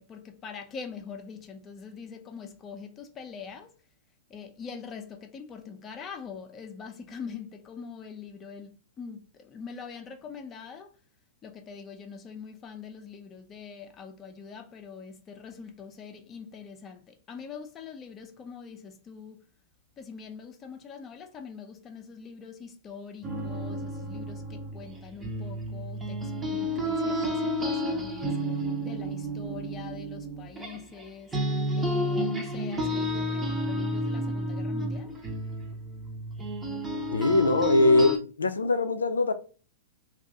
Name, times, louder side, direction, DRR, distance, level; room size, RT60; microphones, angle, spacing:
voice 1, 0.0-3.7 4.3-11.0 11.4-19.4 20.0-31.4 31.7-35.2, left 6 dB, 25° left, 0.6 m, -43 dB
sound 1, 23.2-31.0 31.3-38.2, equal, 15° right, 0.8 m, -31 dB
voice 2, 37.1-39.3, left 2 dB, 85° left, 0.4 m, -22 dB
2.6 x 2.4 x 3.4 m
hypercardioid pair, 105°, 0 cm